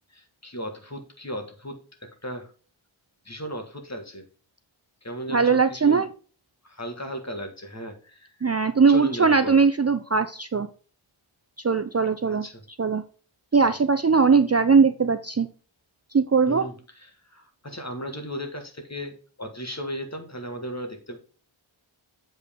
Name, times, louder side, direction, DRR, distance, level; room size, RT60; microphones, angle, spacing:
voice 1, 0.1-2.5 3.3-4.3 5.0-6.1 6.6-8.5 8.9-9.7 12.3-12.6 13.6-13.7 16.5-21.2, equal, 30° left, 5 dB, 1.8 m, -36 dB
voice 2, 5.3-6.1 8.4-10.7 11.6-12.4 12.8-13.0 13.5-15.5 16.1-16.7, right 5 dB, 30° right, 10 dB, 0.5 m, -20 dB
7.8 x 5.2 x 3.6 m, 0.38 s
wide cardioid pair, 45°, 49 cm